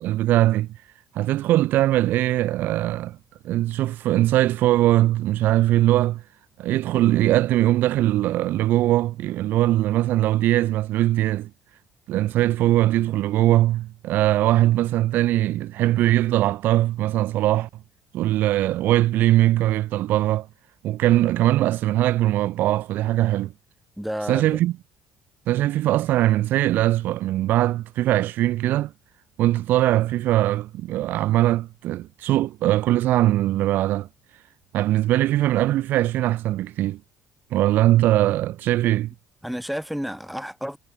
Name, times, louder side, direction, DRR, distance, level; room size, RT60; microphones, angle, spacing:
voice 1, 0.0-0.7 1.1-3.2 3.4-6.2 6.6-11.5 12.1-17.7 18.1-20.5 20.8-23.5 24.3-24.7 25.5-28.9 29.4-34.1 34.7-37.0 37.5-39.1, right 14 dB, 65° right, 0.3 m, -21 dB
voice 2, 24.0-24.6 39.4-40.8, equal, ahead, 1.4 m, -31 dB
cardioid pair, 120°, 4 cm